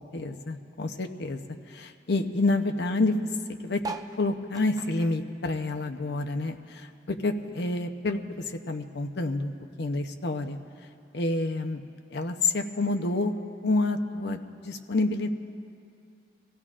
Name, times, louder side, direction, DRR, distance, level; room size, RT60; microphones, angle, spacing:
voice 1, 0.1-1.4 1.7-3.2 3.6-3.8 4.2-9.5 9.8-10.6 11.1-11.8 12.1-13.3 13.6-14.4 14.6-15.3, left 2 dB, 65° left, 5 dB, 0.7 m, -28 dB
sound 1, 3.8-6.5 6.9-8.4 8.9-9.0 9.1-9.2 9.4-9.8 10.6-10.7, right 3 dB, 20° right, 0.4 m, -42 dB
24.0 x 16.5 x 2.5 m, 2.4 s
head